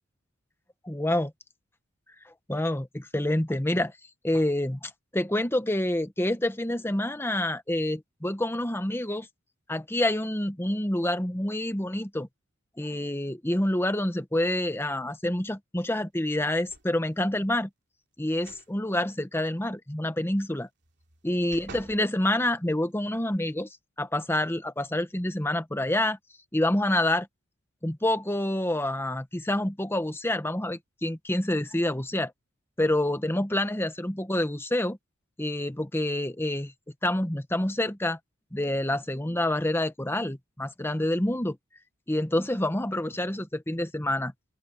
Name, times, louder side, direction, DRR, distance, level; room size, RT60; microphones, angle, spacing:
voice 1, 0.8-1.3 2.5-3.9 4.2-9.3 9.7-12.3 12.8-17.7 18.2-20.7 21.2-23.7 24.0-26.2 26.5-27.3 27.8-32.3 32.8-35.0 35.4-36.7 37.0-38.2 38.5-41.6 42.1-44.3, left 1 dB, 10° left, 1.1 m, -27 dB
sound 1, 16.7-17.2 18.3-18.7 19.1-19.2 20.8-22.1 22.6-22.7, right 3 dB, 55° right, 2.9 m, -49 dB
open air
head